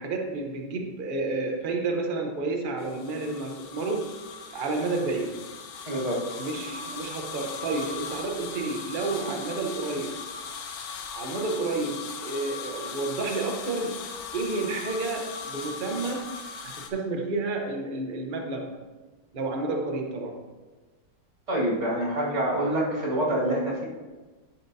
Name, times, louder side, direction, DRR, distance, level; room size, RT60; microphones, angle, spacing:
voice 1, 0.0-4.2 4.5-5.4 6.4-10.2 11.1-14.0 14.3-16.3 16.6-18.8 19.3-20.5 22.3-23.2, right 3 dB, 85° right, 2 dB, 0.4 m, -31 dB
sound 1, 2.8-16.9, left 5 dB, 90° left, 1.5 m, -39 dB
voice 2, 5.9-6.2 21.5-23.9, right 1 dB, 35° right, -4 dB, 2.1 m, -26 dB
11.0 x 5.8 x 2.7 m, 1.3 s
omnidirectional pair, 2.1 m